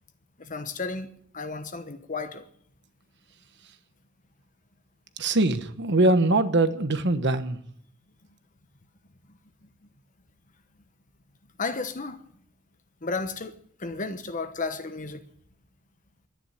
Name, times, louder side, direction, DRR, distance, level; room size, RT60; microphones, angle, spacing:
voice 1, 0.4-1.1 1.3-2.5 11.6-12.2 13.0-15.2, left 3 dB, 35° left, 1.1 m, -33 dB
voice 2, 5.2-7.6, right 2 dB, 55° right, 1.2 m, -22 dB
12.5 x 10.5 x 9.5 m
head